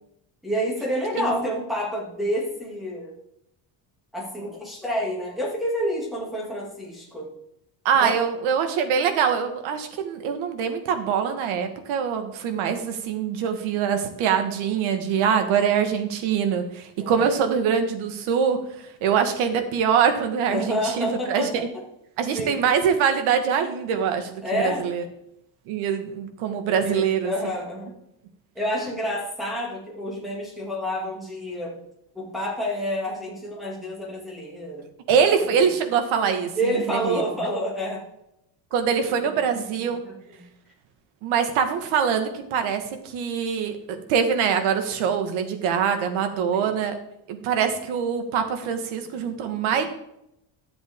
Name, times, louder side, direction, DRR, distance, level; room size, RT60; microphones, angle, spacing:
voice 1, 0.4-3.1 4.1-7.3 8.0-8.2 17.0-17.4 20.5-21.8 22.3-22.6 24.4-24.9 26.7-28.0 28.5-31.8 32.1-34.9 35.2-35.3 35.6-35.7 36.6-38.0 39.2-40.4 46.5-46.7 48.8-49.2, equal, ahead, -3 dB, 2.4 m, -29 dB
voice 2, 1.1-1.5 7.8-21.7 22.2-25.0 25.7-27.3 35.1-37.2 38.7-40.0 41.2-47.0 47.3-49.9, right 7 dB, 80° right, 7 dB, 1.6 m, -24 dB
12.0 x 7.8 x 3.6 m, 0.80 s
cardioid pair, 170°, 47 cm